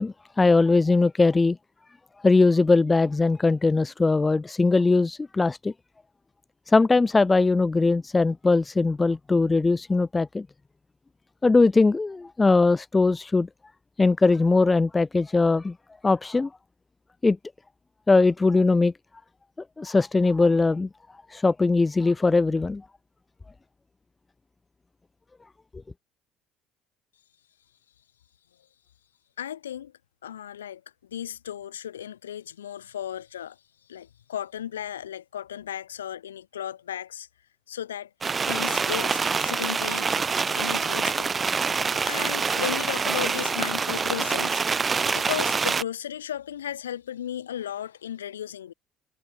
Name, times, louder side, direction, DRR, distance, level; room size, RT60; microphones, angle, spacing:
voice 1, 0.0-1.6 2.2-5.7 6.7-10.5 11.4-13.5 14.0-15.7 16.0-16.5 17.2-17.4 18.1-18.9 19.8-20.9 21.3-22.8, left 3 dB, 20° left, 0.8 m, -20 dB
voice 2, 29.4-29.9 30.2-30.8 31.1-33.6 33.9-37.3 37.7-38.1 38.5-40.1 40.5-41.3 42.0-44.6 45.2-48.7, left 10 dB, 85° left, 2.3 m, -35 dB
sound 1, 38.2-45.8, right 5 dB, 30° right, 2.7 m, -26 dB
hypercardioid pair, 60°, 0 cm